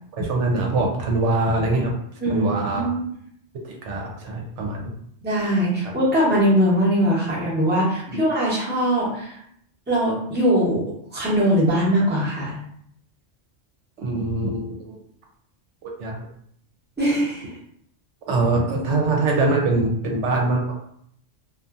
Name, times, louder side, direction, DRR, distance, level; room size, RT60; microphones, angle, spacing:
voice 1, 0.1-1.9 2.3-2.9 3.6-4.9 8.1-8.2 14.0-15.0 15.8-16.3 18.3-20.8, right 2 dB, 80° right, 0 dB, 0.9 m, -23 dB
voice 2, 2.2-3.0 5.2-9.4 9.9-10.8 11.1-12.5 17.0-17.5, equal, 10° right, -6 dB, 0.7 m, -21 dB
2.6 x 2.4 x 2.4 m, 0.67 s
omnidirectional pair, 1.2 m